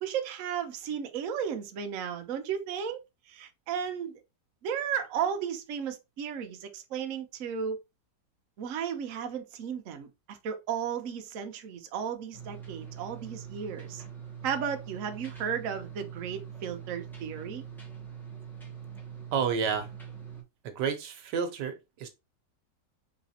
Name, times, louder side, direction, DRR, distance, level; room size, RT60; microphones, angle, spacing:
voice 1, 0.0-3.0 3.3-4.1 4.6-7.8 8.6-14.0 14.4-17.6, right 7 dB, 60° right, 0.9 m, -34 dB
sound 1, 12.3-20.4, right 8 dB, ahead, 1.0 m, -43 dB
voice 2, 19.3-19.9 20.6-22.1, right 6 dB, 80° right, 1.4 m, -30 dB
4.0 x 3.3 x 2.8 m
omnidirectional pair, 1.9 m